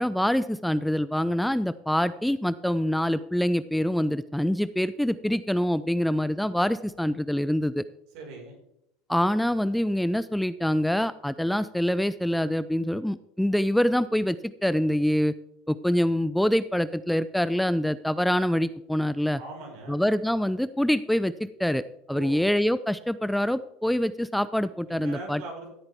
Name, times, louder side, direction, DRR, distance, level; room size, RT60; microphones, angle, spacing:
voice 1, 0.0-7.8 9.1-14.4 14.6-15.3 15.7-19.4 19.9-25.4, equal, 5° left, 15 dB, 0.4 m, -25 dB
voice 2, 8.1-8.6 19.4-20.0 22.1-22.4 24.9-25.7, right 3 dB, 65° right, 0 dB, 4.9 m, -40 dB
14.5 x 8.7 x 3.5 m, 0.79 s
hypercardioid pair, 90°, 0 cm